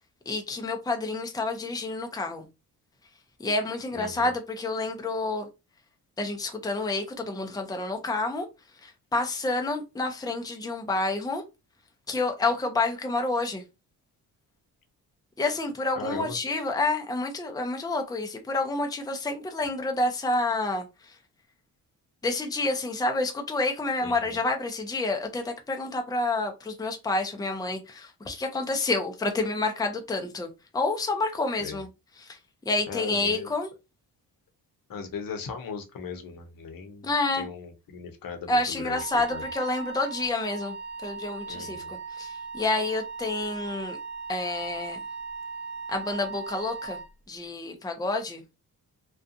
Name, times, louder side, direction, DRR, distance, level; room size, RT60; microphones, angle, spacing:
voice 1, 0.3-2.5 3.4-5.5 6.2-8.5 8.8-11.4 12.1-13.6 15.4-21.2 22.2-31.9 32.2-32.4 32.7-33.7 37.0-37.5 38.5-40.8 41.0-44.0 44.3-45.0 45.9-47.0 47.3-48.4, left 2 dB, 10° left, 0.6 m, -29 dB
voice 2, 3.9-4.3 16.0-16.4 24.0-24.4 31.6-31.8 32.9-33.5 34.9-37.1 37.3-39.4 41.5-41.9, left 5 dB, 55° left, 0.9 m, -38 dB
Wind instrument woodwind instrument, 38.9-47.1, right 4 dB, 25° right, 0.8 m, -38 dB
2.4 x 2.3 x 2.6 m
supercardioid pair, 60°, 41 cm